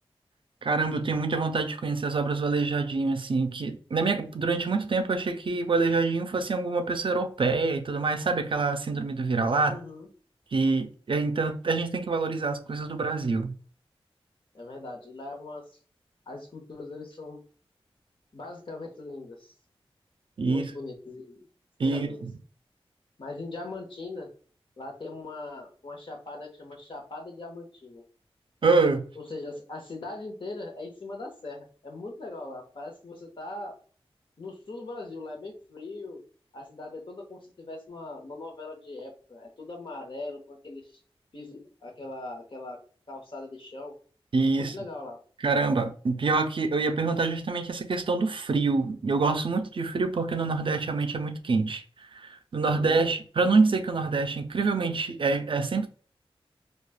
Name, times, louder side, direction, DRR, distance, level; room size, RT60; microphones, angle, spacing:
voice 1, 0.6-9.8 10.5-13.5 20.4-20.6 21.8-22.3 28.6-29.0 44.3-44.7 45.4-51.8 52.1-55.9, right 3 dB, 55° right, 0.4 m, -26 dB
voice 2, 9.6-10.1 14.5-15.6 16.3-17.4 18.3-19.5 20.5-21.4 21.8-22.2 23.2-24.3 24.8-28.0 29.2-33.8 34.4-36.2 36.5-41.0 41.3-42.8 43.1-44.0 44.5-45.2 52.7-53.1, left 2 dB, 55° left, 0.9 m, -40 dB
3.1 x 2.3 x 2.2 m
cardioid pair, 55°, 10 cm